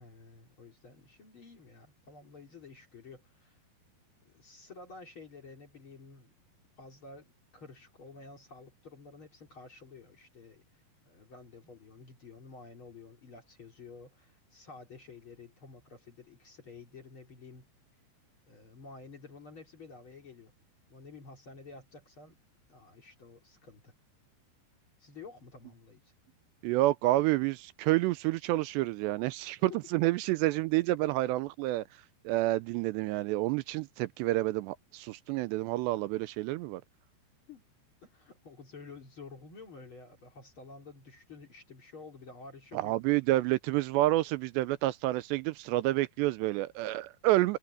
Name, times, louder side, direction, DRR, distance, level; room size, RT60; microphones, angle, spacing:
voice 1, 0.0-3.6 4.2-6.3 6.8-17.7 18.5-20.5 20.9-22.3 22.7-23.9 25.0-26.1 29.7-29.8 37.5-37.6 38.0-43.0, left 4 dB, 35° left, 2.9 m, -51 dB
voice 2, 26.6-31.8 32.2-36.8 42.7-47.6, right 17 dB, 85° right, 2.7 m, -29 dB
omnidirectional pair, 5.1 m